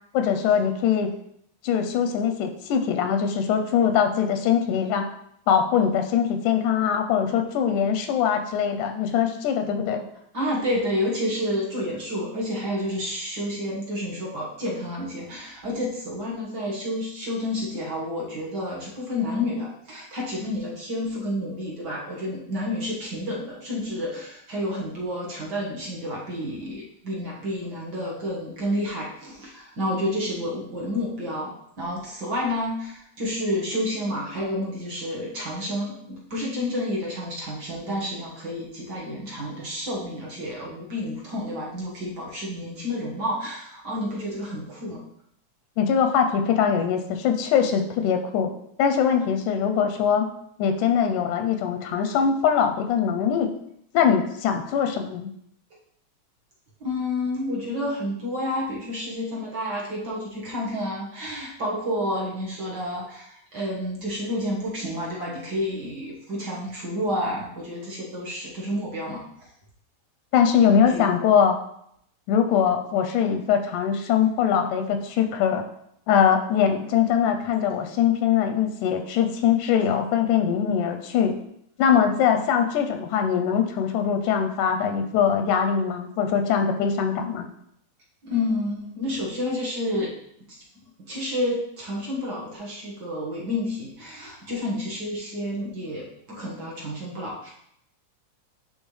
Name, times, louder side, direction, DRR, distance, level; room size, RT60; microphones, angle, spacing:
voice 1, 0.1-1.1 1.6-5.1 5.5-10.0 45.8-48.5 48.8-50.3 50.6-53.5 53.9-55.3 70.3-71.6 72.3-75.6 76.1-81.4 81.8-87.5, left 8 dB, 85° left, 6 dB, 2.1 m, -22 dB
voice 2, 10.3-45.0 56.8-69.2 70.9-71.1 88.2-90.1 90.5-90.6 91.1-97.5, left 1 dB, 45° right, -5 dB, 1.5 m, -30 dB
10.5 x 3.6 x 3.2 m, 0.72 s
omnidirectional pair, 3.6 m